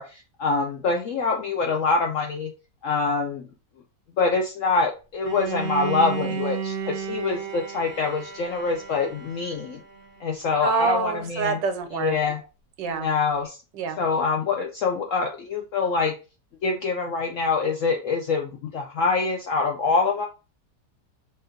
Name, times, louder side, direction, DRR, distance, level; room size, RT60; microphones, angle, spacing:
voice 1, 0.0-2.5 2.8-3.5 4.2-9.8 10.2-11.6 11.9-12.4 12.9-13.6 14.0-16.1 16.6-20.2, left 4 dB, 75° left, 2 dB, 0.7 m, -25 dB
Bowed string instrument, 5.2-10.2, right 5 dB, 65° right, 0.5 m, -33 dB
voice 2, 10.6-12.2 12.8-13.1 13.7-14.0, right 5 dB, 90° right, 7 dB, 1.4 m, -26 dB
4.2 x 2.6 x 3.8 m, 0.32 s
omnidirectional pair, 1.9 m